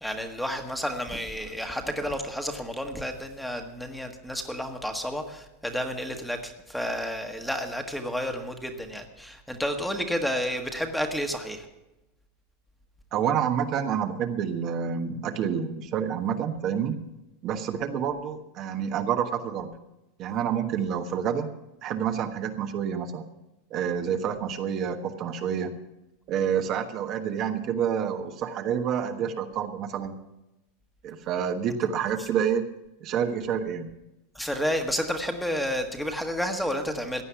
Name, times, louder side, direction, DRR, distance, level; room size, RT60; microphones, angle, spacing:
voice 1, 0.0-11.7 34.3-37.2, equal, ahead, 4 dB, 1.5 m, -31 dB
voice 2, 13.1-17.0 17.4-19.7 20.2-21.5 21.8-23.3 23.7-25.8 26.3-30.2 31.0-32.7 33.0-33.9, right 8 dB, 40° right, 5 dB, 1.3 m, -28 dB
16.0 x 9.6 x 5.8 m, 0.95 s
supercardioid pair, 140°, 0 cm